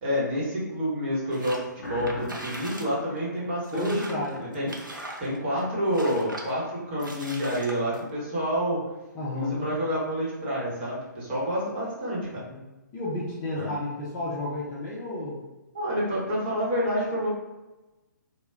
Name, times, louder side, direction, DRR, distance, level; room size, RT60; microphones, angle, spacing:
voice 1, 0.0-4.1 4.4-4.7 5.2-8.8 9.3-12.4 13.6-13.7 15.7-17.3, equal, 35° right, -6 dB, 1.1 m, -28 dB
sound 1, 1.3-1.6 2.0-2.9 3.2-3.3 3.6-5.6 5.9-6.5 7.0-8.0, right 1 dB, 85° right, 0.5 m, -40 dB
sound 2, 1.8-4.4, left 2 dB, 55° left, 0.9 m, -41 dB
voice 2, 3.7-4.4 9.1-9.6 12.5-12.7 12.9-15.4, left 1 dB, 20° left, -7 dB, 0.5 m, -31 dB
2.2 x 2.1 x 3.3 m, 1.1 s
figure-of-eight pair, 130°, 10 cm